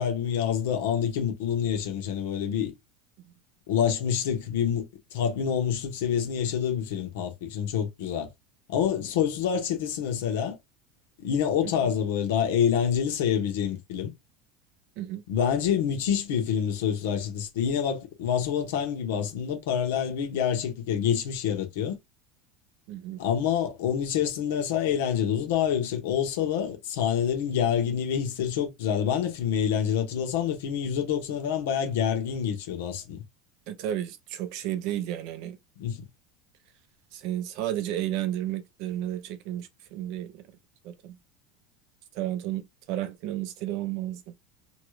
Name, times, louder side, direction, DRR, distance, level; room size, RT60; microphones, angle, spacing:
voice 1, 0.0-2.7 3.7-8.3 8.7-10.6 11.2-14.1 15.3-22.0 23.2-33.2 35.8-36.0, left 8 dB, 80° left, 1.0 m, -27 dB
voice 2, 22.9-23.2 33.7-35.6 37.1-40.4 40.8-41.2 42.1-44.2, right 12 dB, 50° right, 0.5 m, -32 dB
2.9 x 2.4 x 3.1 m
supercardioid pair, 175°, 0 cm